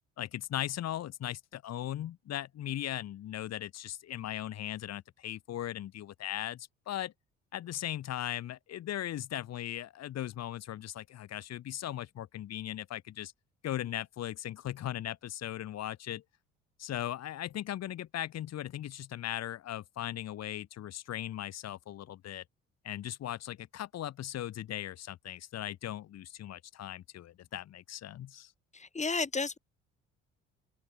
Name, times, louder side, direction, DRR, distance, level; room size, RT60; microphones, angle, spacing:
voice 1, 0.2-7.1 7.5-13.3 13.6-16.2 16.8-22.4 22.8-28.5, left 12 dB, 60° left, 2.5 m, -38 dB
voice 2, 28.7-29.6, left 4 dB, 25° left, 2.0 m, -32 dB
hypercardioid pair, 60°, 29 cm